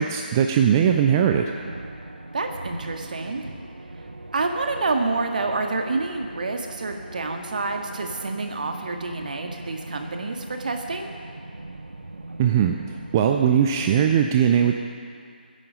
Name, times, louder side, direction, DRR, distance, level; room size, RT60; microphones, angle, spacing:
voice 1, 0.0-1.5 12.4-12.8 13.1-14.7, right 8 dB, 20° right, 4 dB, 0.4 m, -19 dB
sound 1, 0.9-14.0, right 2 dB, 70° right, 0.9 m, -39 dB
voice 2, 2.3-3.5 4.3-11.1, right 3 dB, 50° right, 4 dB, 1.6 m, -28 dB
20.5 x 10.0 x 5.2 m, 2.3 s
figure-of-eight pair, 150°, 6 cm